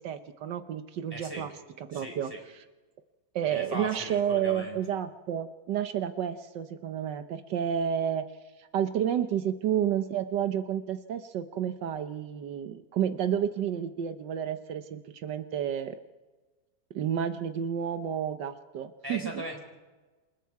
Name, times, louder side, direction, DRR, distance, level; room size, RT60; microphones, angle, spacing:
voice 1, 0.0-1.5 1.8-2.6 3.3-8.3 8.6-16.0 16.9-19.4, right 9 dB, 80° right, 9 dB, 1.5 m, -31 dB
voice 2, 1.1-1.5 1.9-2.4 3.5-4.8 19.0-19.6, equal, 10° right, 2 dB, 4.5 m, -38 dB
28.0 x 24.0 x 4.7 m, 1.2 s
omnidirectional pair, 1.9 m